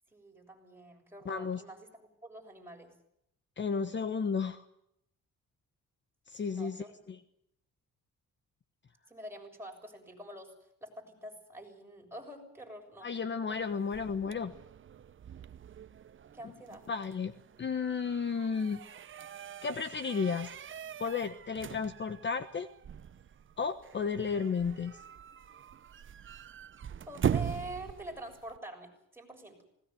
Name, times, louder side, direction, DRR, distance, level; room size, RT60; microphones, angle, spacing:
voice 1, 0.1-2.9 6.4-7.0 9.1-10.5 10.8-13.1 13.5-13.6 16.3-16.8 27.1-29.6, right 1 dB, 10° right, 1 dB, 7.1 m, -46 dB
voice 2, 1.2-1.6 3.6-4.6 6.3-7.2 13.0-14.5 16.9-17.3 17.6-18.8 19.6-20.5 21.0-22.7 23.6-25.0, left 5 dB, 40° left, 11 dB, 1.3 m, -33 dB
sound 1, 13.5-28.6, right 8 dB, 40° right, 0.8 m, -41 dB
20.0 x 18.5 x 9.4 m, 0.77 s
cardioid pair, 90°, 30 cm